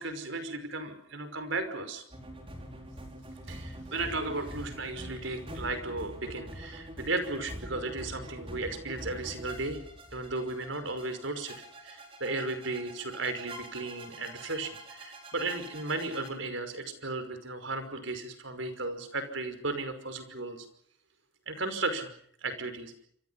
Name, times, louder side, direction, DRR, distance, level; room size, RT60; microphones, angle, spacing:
voice 1, 0.0-2.0 3.5-9.8 10.1-11.6 11.8-20.7 21.5-22.1 22.4-22.9, right 2 dB, 70° right, 9 dB, 5.5 m, -35 dB
sound 1, 2.1-16.3, right 1 dB, 30° right, 4.7 m, -45 dB
27.5 x 26.0 x 5.6 m, 0.64 s
head